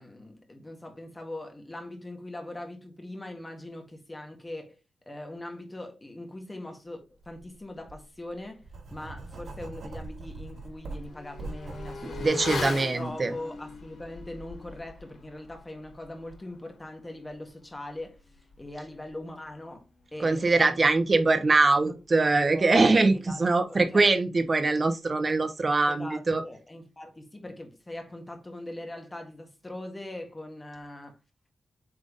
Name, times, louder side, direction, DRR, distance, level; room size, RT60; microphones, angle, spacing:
voice 1, 0.0-4.8 5.1-8.6 8.9-18.2 18.6-19.8 20.1-20.8 21.8-22.0 22.4-22.8 23.1-24.4 25.9-31.2, left 1 dB, 15° left, 1.7 m, -41 dB
Writing, 7.2-7.4 7.8-12.3, right 3 dB, 70° right, 2.1 m, -41 dB
Motorcycle / Accelerating revving vroom, 9.3-9.4 9.8-19.8 20.1-20.2, left 4 dB, 90° left, 3.4 m, -42 dB
voice 2, 12.2-13.3 20.2-26.4, right 3 dB, 30° right, 1.1 m, -23 dB
8.1 x 3.5 x 3.7 m
wide cardioid pair, 130°, 0 cm